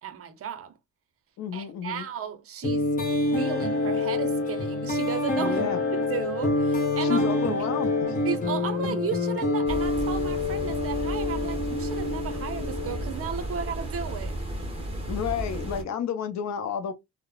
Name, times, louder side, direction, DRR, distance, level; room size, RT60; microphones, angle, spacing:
voice 1, 0.0-0.8 1.5-5.6 5.9-7.3 7.6-7.7 8.2-14.4, right 8 dB, 50° right, 0.6 m, -34 dB
voice 2, 1.4-2.1 5.4-5.8 7.0-8.2 15.1-16.9, left 7 dB, 65° left, 0.6 m, -31 dB
sound 1, 2.6-13.2, left 2 dB, 25° left, 1.0 m, -27 dB
sound 2, 9.7-15.8, right 1 dB, 20° right, 1.0 m, -34 dB
3.0 x 2.1 x 2.2 m
cardioid pair, 90°, 30 cm